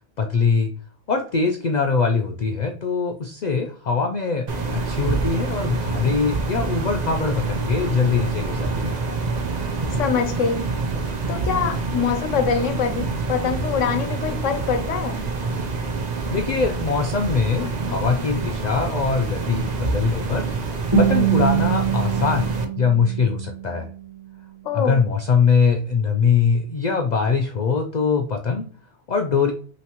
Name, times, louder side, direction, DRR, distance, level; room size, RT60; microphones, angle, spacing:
voice 1, 0.2-0.7 1.1-9.0 16.3-20.5 21.0-23.9 24.7-28.7 29.1-29.5, left 5 dB, 60° left, 5 dB, 0.4 m, -22 dB
sound 1, 4.5-22.7, right 3 dB, 45° right, 0.6 m, -26 dB
voice 2, 10.0-10.7 11.3-15.2 24.6-25.0, left 6 dB, 85° left, 8 dB, 1.1 m, -24 dB
Guitar, 20.9-23.9, right 8 dB, 25° right, 1.2 m, -23 dB
5.7 x 3.0 x 2.9 m, 0.43 s
omnidirectional pair, 1.3 m